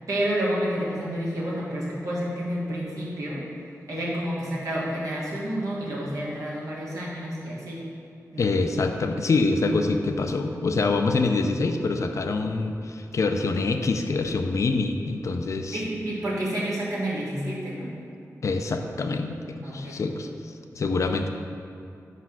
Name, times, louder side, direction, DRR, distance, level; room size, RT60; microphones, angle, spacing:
voice 1, 0.1-3.4 3.9-7.8 8.3-8.5 15.7-17.9 19.6-20.0, right 1 dB, 70° right, -6 dB, 1.6 m, -29 dB
voice 2, 8.4-15.8 18.4-20.3 20.7-21.3, left 3 dB, 60° left, 5 dB, 0.4 m, -25 dB
5.4 x 4.1 x 6.0 m, 2.5 s
wide cardioid pair, 135°, 6 cm